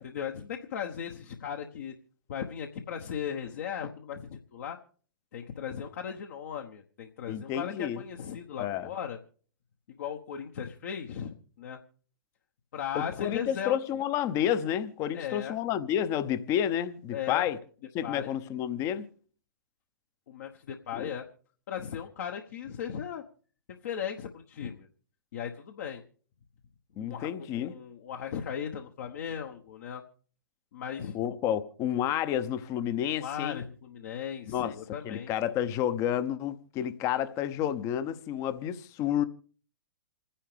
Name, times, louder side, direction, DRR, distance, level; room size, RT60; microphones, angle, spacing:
voice 1, 0.0-1.9 2.3-4.8 5.3-9.2 10.0-11.8 12.7-13.8 15.1-15.6 17.1-17.5 18.0-18.3 20.3-21.2 21.7-23.2 23.8-24.9 25.3-26.0 26.9-30.0 30.7-31.2 33.2-35.3, left 8 dB, 50° left, 1.1 m, -37 dB
voice 2, 7.3-8.0 8.6-8.9 12.9-17.6 17.9-19.1 20.9-21.1 27.0-27.7 31.1-33.6 34.5-34.8 35.0-39.2, left 10 dB, 25° left, 0.8 m, -30 dB
28.0 x 10.0 x 3.3 m
figure-of-eight pair, 115°, 11 cm